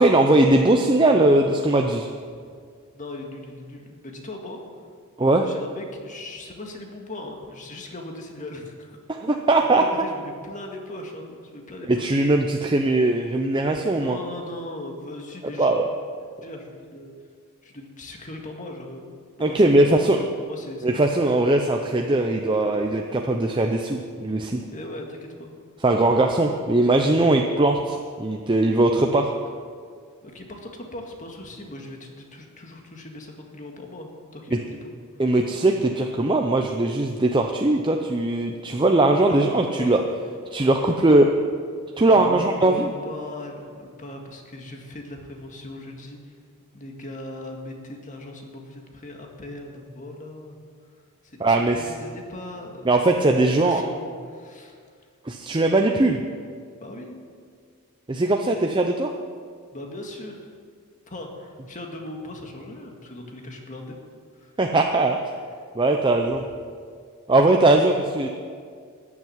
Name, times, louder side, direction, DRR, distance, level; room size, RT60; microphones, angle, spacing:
voice 1, 0.0-2.1 5.2-5.5 9.1-9.8 11.9-14.2 15.6-15.9 19.4-20.2 20.8-24.6 25.8-29.3 34.5-34.6 35.2-40.0 40.5-41.3 42.0-42.9 51.4-51.8 52.9-53.8 55.3-56.2 58.1-59.1 64.6-65.2 65.7-66.4 67.3-68.3, right 2 dB, 20° right, 3 dB, 0.6 m, -20 dB
voice 2, 2.9-4.8 5.4-12.2 13.8-15.7 16.4-17.1 17.6-19.1 19.4-21.2 24.7-25.5 30.2-34.7 39.1-40.0 40.7-41.0 42.1-46.3 46.7-50.6 51.2-54.8 56.8-57.2 59.7-60.5 61.1-64.0 64.3-64.6 66.4-66.5, left 1 dB, 35° left, 2 dB, 1.9 m, -39 dB
14.0 x 7.4 x 9.6 m, 2.1 s
head